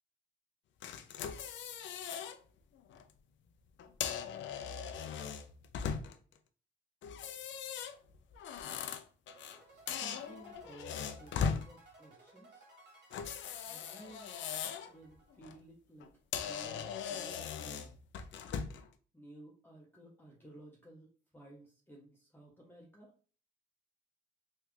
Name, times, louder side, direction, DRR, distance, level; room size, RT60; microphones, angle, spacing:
sound 1, 0.8-2.4 2.8-3.0 3.8-6.3 7.0-9.6 9.9-11.6 13.1-14.9 15.3-15.5 16.0-16.1 16.3-18.9, left 7 dB, 70° left, 0.5 m, -39 dB
sound 2, 9.3-15.6, right 2 dB, 60° right, 1.7 m, -60 dB
voice 1, 9.7-12.7 13.5-14.3 14.9-16.1 16.4-18.0 19.1-21.1 21.3-23.1, right 1 dB, 10° left, -2 dB, 0.7 m, -55 dB
3.2 x 2.4 x 3.2 m, 0.41 s
cardioid pair, 90°, 20 cm